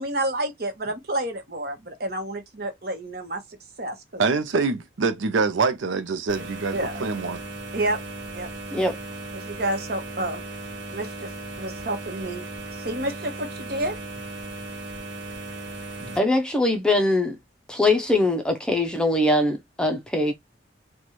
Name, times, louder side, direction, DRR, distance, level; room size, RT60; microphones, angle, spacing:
voice 1, 0.0-3.4 3.8-4.2 6.7-7.0 7.7-8.0 8.3-8.5 9.3-10.4 10.9-11.3 11.6-12.5 12.7-14.0 16.0-16.2, right 1 dB, 50° right, 1.0 m, -29 dB
voice 2, 4.2-7.4, right 4 dB, 90° right, 0.6 m, -25 dB
sound 1, 6.3-16.2, right 2 dB, 70° right, 1.3 m, -37 dB
voice 3, 16.2-17.4 17.7-20.3, left 2 dB, 5° left, 0.5 m, -22 dB
4.2 x 2.3 x 3.0 m
head